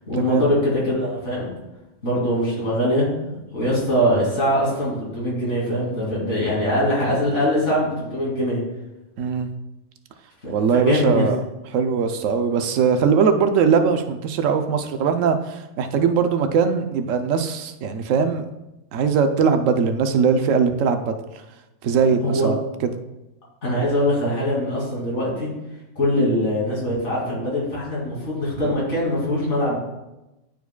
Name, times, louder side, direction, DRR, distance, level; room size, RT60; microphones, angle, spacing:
voice 1, 0.1-1.5 2.0-3.1 3.5-8.6 10.4-11.3 22.2-22.5 23.6-25.5 25.9-29.8, equal, 65° left, -6 dB, 2.9 m, -22 dB
voice 2, 9.2-9.5 10.5-11.4 11.7-18.4 18.9-21.2 21.8-22.6, right 6 dB, 85° right, 7 dB, 1.0 m, -20 dB
10.5 x 4.6 x 2.2 m, 0.97 s
omnidirectional pair, 1.3 m